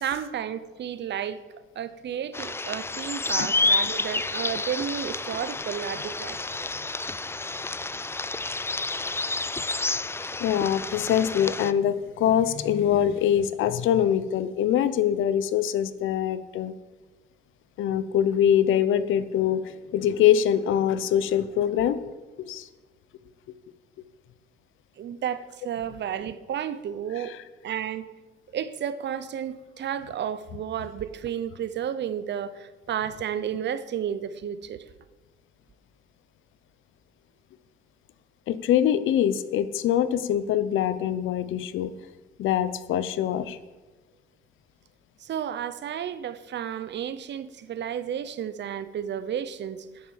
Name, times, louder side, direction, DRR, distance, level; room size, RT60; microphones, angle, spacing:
voice 1, 0.0-6.4 25.0-27.4 27.6-28.1 28.5-34.8 45.2-50.1, right 9 dB, 65° right, 14 dB, 0.9 m, -32 dB
sound 1, 2.3-11.7, left 3 dB, 10° left, 0.4 m, -29 dB
voice 2, 10.4-16.7 17.8-22.0 22.4-22.7 27.2-27.4 38.5-41.9 42.4-43.6, left 10 dB, 85° left, 14 dB, 0.9 m, -24 dB
9.9 x 9.7 x 7.4 m, 1.2 s
cardioid pair, 90°, 20 cm